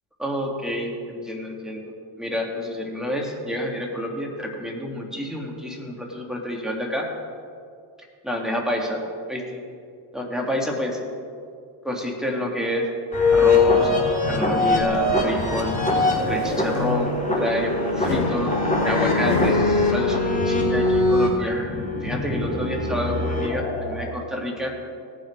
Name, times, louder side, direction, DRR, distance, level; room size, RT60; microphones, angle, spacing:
voice 1, 0.2-1.8 2.2-7.1 8.2-9.0 9.3-9.6 10.1-11.0 11.8-12.9 13.3-13.9 14.3-18.6 18.8-24.7, left 1 dB, ahead, -1 dB, 2.6 m, -28 dB
sound 1, 13.1-24.1, left 2 dB, 15° left, 3.1 m, -22 dB
sound 2, 14.7-15.3 15.8-17.4 18.0-19.7, left 4 dB, 85° left, 1.8 m, -30 dB
18.0 x 6.2 x 4.7 m, 2.3 s
supercardioid pair, 70°, 46 cm